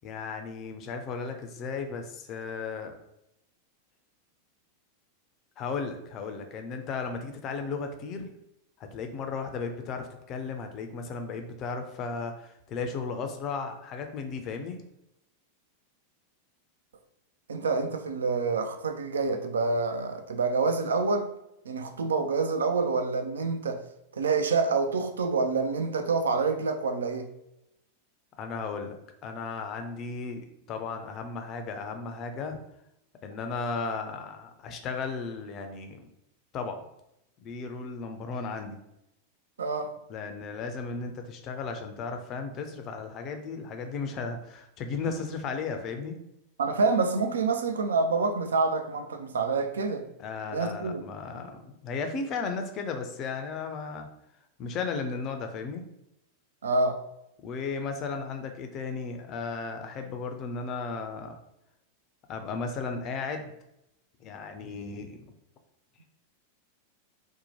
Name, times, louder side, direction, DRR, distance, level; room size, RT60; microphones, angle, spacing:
voice 1, 0.0-3.0 5.6-8.3 8.8-14.8 28.4-32.6 33.2-36.1 36.5-36.8 37.4-38.8 40.1-46.1 50.2-54.1 54.6-55.8 57.4-61.4 62.3-63.5 64.2-65.3, left 4 dB, 35° left, 0.4 m, -35 dB
voice 2, 17.5-21.3 21.7-23.8 24.1-27.3 39.6-39.9 46.6-50.1 50.5-51.0 56.6-57.0, right 4 dB, 70° right, 0.3 m, -27 dB
2.7 x 2.1 x 2.9 m
figure-of-eight pair, 90°, 0 cm